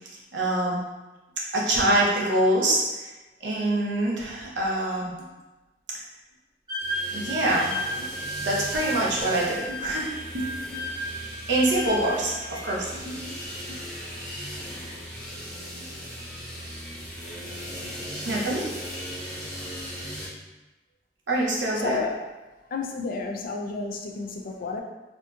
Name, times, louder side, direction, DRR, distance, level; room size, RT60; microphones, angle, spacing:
voice 1, 0.3-0.8 1.5-3.1 3.4-5.2 5.9-6.0 7.1-7.7 8.0-8.1 8.4-10.1 10.3-10.8 11.5-13.3 15.7-15.8 18.2-18.7 21.3-22.0, right 1 dB, 90° right, -3 dB, 0.7 m, -25 dB
Wind instrument woodwind instrument, 6.7-12.7, right 1 dB, 25° right, 0.9 m, -34 dB
sound 1, 6.8-20.3, equal, 5° left, 0.7 m, -38 dB
voice 2, 21.7-22.2 22.7-24.8, left 4 dB, 55° left, 2 dB, 0.3 m, -31 dB
2.8 x 2.5 x 2.3 m, 1.1 s
head